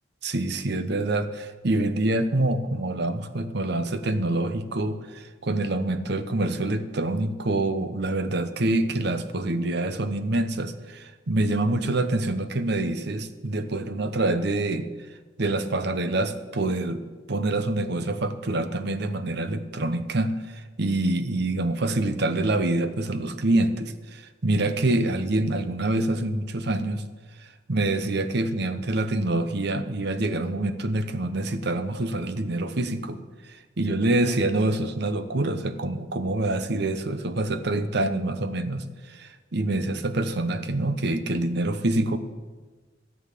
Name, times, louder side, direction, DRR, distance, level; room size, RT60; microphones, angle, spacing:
voice 1, 0.2-14.9 15.4-17.0 17.3-27.0 27.7-33.2 33.5-42.2, right 2 dB, 55° right, 10 dB, 0.9 m, -26 dB
13.5 x 8.1 x 7.4 m, 1.3 s
head